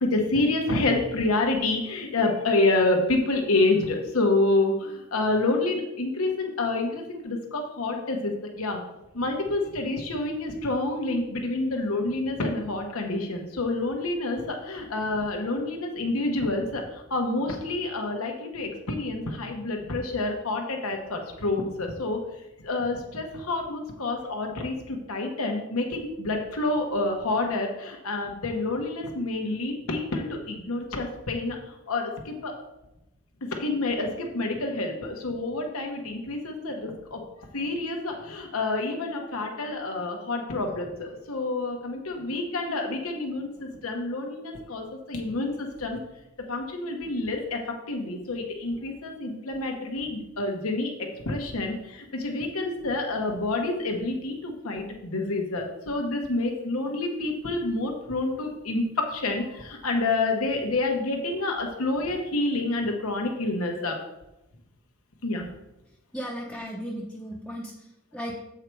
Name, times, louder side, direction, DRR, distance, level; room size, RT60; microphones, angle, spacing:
voice 1, 0.0-8.8 9.1-22.2 22.6-32.5 33.6-37.2 37.5-46.0 46.5-47.6 47.9-64.0 65.2-65.5, left 2 dB, 85° left, 2 dB, 1.1 m, -28 dB
voice 2, 66.1-68.3, equal, 5° left, -3 dB, 0.7 m, -36 dB
8.0 x 4.8 x 4.6 m, 0.92 s
head